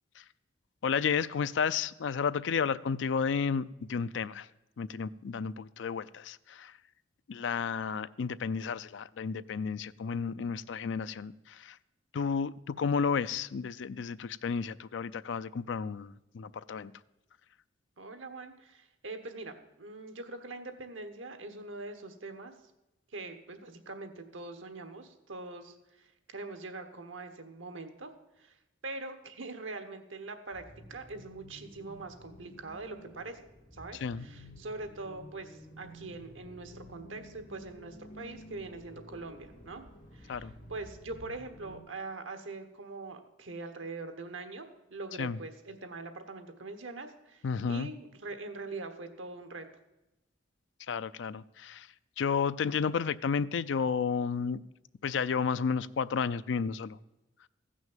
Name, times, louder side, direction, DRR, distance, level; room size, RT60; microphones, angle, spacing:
voice 1, 0.8-4.5 4.8-6.8 7.3-11.8 12.1-16.9 34.0-34.3 40.3-40.5 45.2-45.4 47.4-47.9 50.8-51.9 52.2-54.6 55.0-57.0, left 6 dB, 75° left, 0.4 m, -32 dB
voice 2, 18.0-22.5 23.1-28.1 28.4-28.6 28.8-33.4 33.7-39.8 40.1-49.7, right 3 dB, 90° right, 1.3 m, -43 dB
sound 1, 30.5-41.8, equal, 40° left, 2.8 m, -52 dB
15.0 x 6.3 x 7.3 m
head